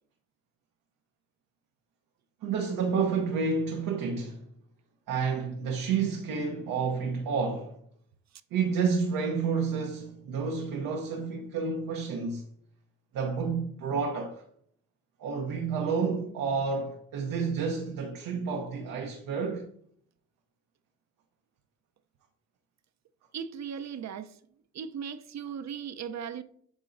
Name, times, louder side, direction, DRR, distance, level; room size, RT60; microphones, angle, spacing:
voice 1, 2.4-4.4 5.1-7.8 8.5-12.4 13.1-14.4 15.2-19.7, right 5 dB, 80° right, 0.9 m, -30 dB
voice 2, 23.3-24.4 24.7-26.4, right 7 dB, 55° right, 0.7 m, -37 dB
8.9 x 5.7 x 2.6 m
supercardioid pair, 50°, 33 cm